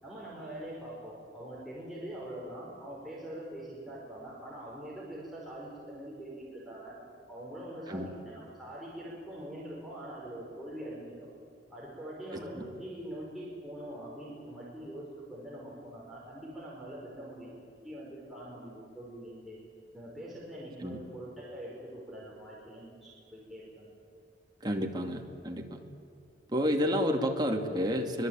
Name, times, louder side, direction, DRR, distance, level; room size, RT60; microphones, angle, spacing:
voice 1, 0.0-7.0 7.3-11.1 11.7-17.6 17.8-19.6 19.9-23.9, right 1 dB, ahead, -6 dB, 5.1 m, -43 dB
voice 2, 12.3-12.7 20.8-21.0 24.6-25.8 26.5-28.3, equal, 25° right, 2 dB, 2.5 m, -30 dB
24.5 x 21.0 x 9.1 m, 2.4 s
head